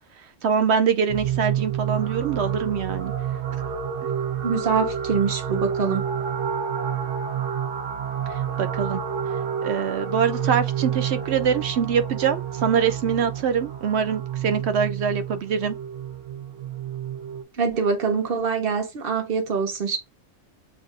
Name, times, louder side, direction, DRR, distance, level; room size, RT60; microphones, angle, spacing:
voice 1, 0.4-3.1 8.6-9.0 9.6-15.8, right 7 dB, 65° right, 0.9 m, -24 dB
sound 1, 1.1-17.4, right 8 dB, 85° right, 1.1 m, -29 dB
voice 2, 4.4-6.0 17.6-20.0, right 5 dB, 50° right, 1.2 m, -24 dB
7.3 x 2.5 x 2.4 m
omnidirectional pair, 1.2 m